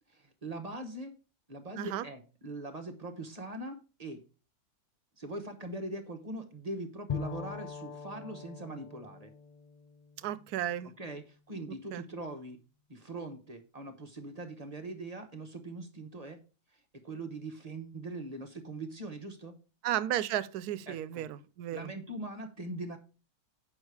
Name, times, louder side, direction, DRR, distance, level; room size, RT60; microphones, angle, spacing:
voice 1, 0.1-1.1 1.5-4.2 5.2-9.3 11.0-12.6 12.9-16.4 16.7-19.6 20.9-21.3 21.7-23.0, right 2 dB, 30° right, 0.9 m, -41 dB
voice 2, 1.7-2.1 10.2-10.9 11.9-12.0 19.8-21.9, right 12 dB, 85° right, 1.1 m, -34 dB
Bowed string instrument, 7.1-10.8, left 6 dB, 75° left, 0.3 m, -42 dB
8.1 x 5.9 x 4.7 m
omnidirectional pair, 1.6 m